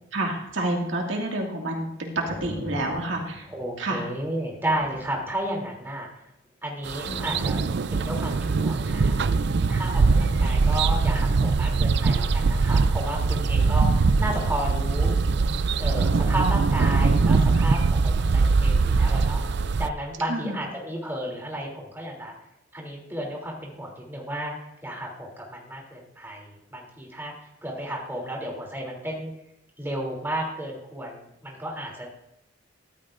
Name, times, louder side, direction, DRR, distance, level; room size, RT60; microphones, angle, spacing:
voice 1, 0.1-3.5 3.8-4.0 20.3-20.6, right 1 dB, 75° right, 0 dB, 2.1 m, -28 dB
sound 1, 2.3-4.2 4.7-5.9 7.0-8.7 10.1-12.5 14.1-16.3 16.6-16.7, left 1 dB, 45° left, 1.5 m, -43 dB
voice 2, 3.5-6.2 6.6-7.6 7.9-9.2 9.7-15.1 15.8-22.3 22.7-29.3 29.8-32.1, right 1 dB, 10° right, -2 dB, 3.1 m, -33 dB
sound 2, 6.9-19.9, right 4 dB, 60° right, 0.4 m, -22 dB
14.0 x 13.5 x 2.6 m, 0.83 s
head